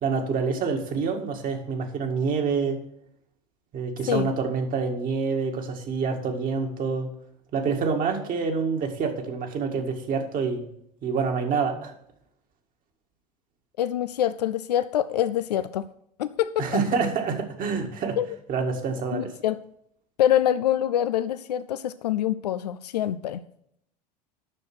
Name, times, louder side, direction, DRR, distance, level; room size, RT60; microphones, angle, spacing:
voice 1, 0.0-2.8 3.7-7.1 7.5-10.7 11.0-11.9 16.6-18.2 18.5-19.3, right 5 dB, 45° right, 4 dB, 2.0 m, -27 dB
voice 2, 13.8-15.9 16.2-16.7 18.2-18.3 19.1-19.6 20.2-23.4, left 11 dB, 80° left, 13 dB, 0.4 m, -25 dB
9.7 x 6.5 x 6.1 m, 0.73 s
hypercardioid pair, 80°, 20 cm